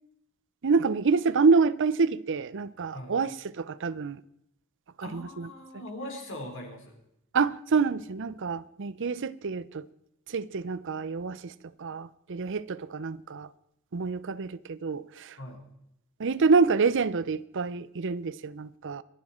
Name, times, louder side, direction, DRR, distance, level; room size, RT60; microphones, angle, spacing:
voice 1, 0.6-4.2 5.0-5.5 7.3-9.9 10.3-13.5 13.9-15.4 16.2-19.0, right 4 dB, 60° right, 0.6 m, -27 dB
voice 2, 5.0-7.0 15.4-15.7, left 1 dB, 60° left, 4.2 m, -41 dB
26.0 x 9.8 x 4.4 m
head